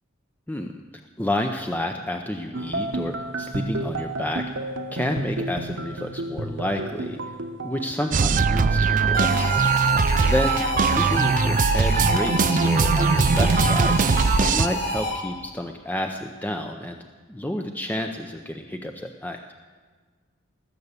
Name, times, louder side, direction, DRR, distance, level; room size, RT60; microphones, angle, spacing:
voice 1, 1.2-4.5 4.9-7.2 7.6-9.5 10.2-13.9 14.4-17.0 17.3-19.4, left 1 dB, 10° left, 4 dB, 0.6 m, -30 dB
sound 1, 2.5-9.6, right 2 dB, 60° right, 1.0 m, -32 dB
sound 2, 8.1-14.7, right 5 dB, 40° right, 0.5 m, -20 dB
sound 3, 9.1-15.4, left 1 dB, 50° left, 5.5 m, -29 dB
19.5 x 7.0 x 8.2 m, 1.5 s
head